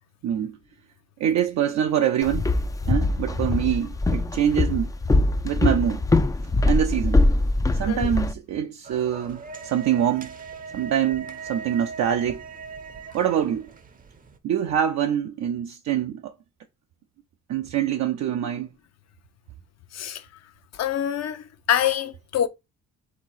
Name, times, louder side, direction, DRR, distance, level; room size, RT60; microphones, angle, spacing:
voice 1, 0.2-0.6 1.2-2.5 2.9-4.9 5.4-6.0 6.7-7.2 7.7-10.3 10.7-12.4 13.1-13.7 14.4-16.3 17.5-18.7, right 9 dB, 65° right, 0.5 m, -25 dB
Walk footsteps, 2.2-8.3, left 2 dB, 10° left, 0.3 m, -22 dB
sound 1, 8.8-14.4, right 5 dB, 30° right, 0.6 m, -39 dB
voice 2, 19.9-20.2 20.8-22.5, left 10 dB, 60° left, 0.7 m, -25 dB
3.6 x 2.8 x 4.7 m
cardioid pair, 90°, 30 cm